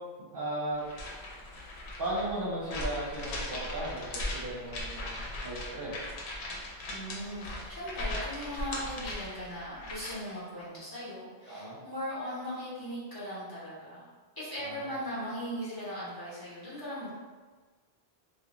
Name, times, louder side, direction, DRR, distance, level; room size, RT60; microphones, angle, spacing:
voice 1, 0.3-0.8 2.0-6.1 11.5-11.8 14.6-15.0, right 1 dB, 60° right, -7 dB, 0.8 m, -36 dB
sound 1, 0.8-10.3, left 1 dB, 90° left, 0.9 m, -38 dB
voice 2, 6.9-14.1 14.4-17.1, equal, 20° left, -11 dB, 1.0 m, -38 dB
2.4 x 2.2 x 2.9 m, 1.4 s
omnidirectional pair, 1.1 m